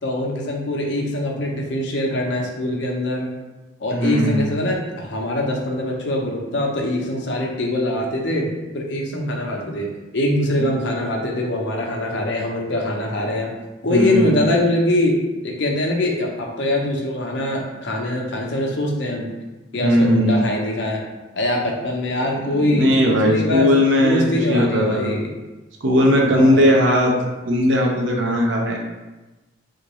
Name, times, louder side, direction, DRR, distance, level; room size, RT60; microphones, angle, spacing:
voice 1, 0.0-3.3 3.8-13.6 13.8-15.2 15.4-19.3 19.7-21.0 21.3-23.7 24.0-25.3 26.3-26.7, left 1 dB, 60° left, 0 dB, 0.6 m, -23 dB
voice 2, 3.9-4.4 10.6-10.7 13.9-14.4 19.7-20.4 22.4-25.2 25.8-27.1 27.4-28.8, equal, 75° right, -1 dB, 0.7 m, -18 dB
3.8 x 2.4 x 3.0 m, 1.1 s
head